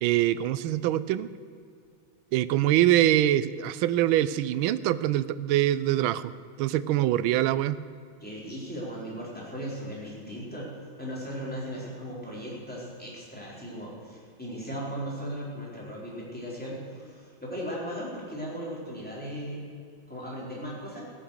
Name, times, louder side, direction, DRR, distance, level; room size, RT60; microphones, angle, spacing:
voice 1, 0.0-1.3 2.3-6.3 6.6-7.8, right 13 dB, 80° right, 15 dB, 1.4 m, -24 dB
voice 2, 8.2-10.7 11.0-19.6 20.1-21.1, equal, 5° left, -5 dB, 3.9 m, -37 dB
17.0 x 9.1 x 6.5 m, 2.3 s
omnidirectional pair, 2.2 m